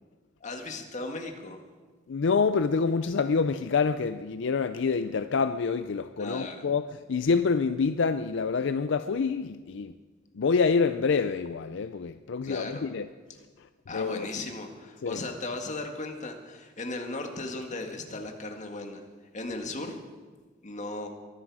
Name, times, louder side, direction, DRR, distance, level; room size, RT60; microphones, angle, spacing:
voice 1, 0.4-1.6 6.2-6.6 12.4-12.9 13.9-19.0 19.3-20.0 20.6-21.1, left 2 dB, 40° left, 1.9 m, -36 dB
voice 2, 2.1-10.0 10.3-13.1 13.6-13.7 13.9-14.3 15.0-15.2, left 5 dB, 65° left, 0.5 m, -27 dB
23.0 x 11.0 x 4.9 m
head